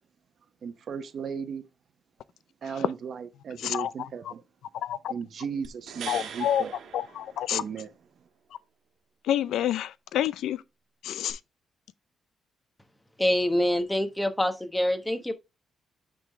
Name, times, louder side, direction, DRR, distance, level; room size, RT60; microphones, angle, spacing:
voice 1, 0.6-1.6 2.6-4.4 5.1-6.7 7.5-7.9, right 6 dB, 60° right, 1.0 m, -36 dB
voice 2, 3.6-4.1 4.8-5.1 6.1-6.6 6.9-7.6 9.2-10.6 11.0-11.4, left 11 dB, 85° left, 0.4 m, -28 dB
sound 1, 5.6-7.9 11.3-11.4, right 7 dB, 80° right, 1.5 m, -41 dB
voice 3, 13.2-15.3, left 1 dB, 10° left, 1.2 m, -25 dB
9.2 x 3.8 x 3.6 m
cardioid pair, 90°, 0 cm